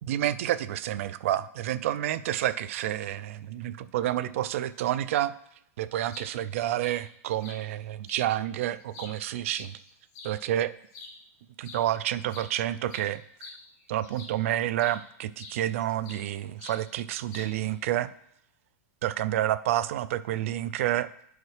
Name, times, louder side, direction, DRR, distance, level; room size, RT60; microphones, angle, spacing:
voice 1, 0.0-5.3 5.8-9.7 10.2-10.7 11.6-13.2 13.9-18.1 19.0-21.1, right 13 dB, 60° right, 14 dB, 0.4 m, -29 dB
sound 1, 6.1-6.3 6.8-7.0 7.4-7.6 8.1-8.2 8.7-10.3 10.9-11.2 11.6-11.8 12.1-14.4 14.8-15.0 15.4-16.3 16.6-16.8 17.3-17.7, left 4 dB, 35° left, 0.9 m, -46 dB
10.5 x 4.7 x 3.2 m, 0.71 s
supercardioid pair, 165°, 8 cm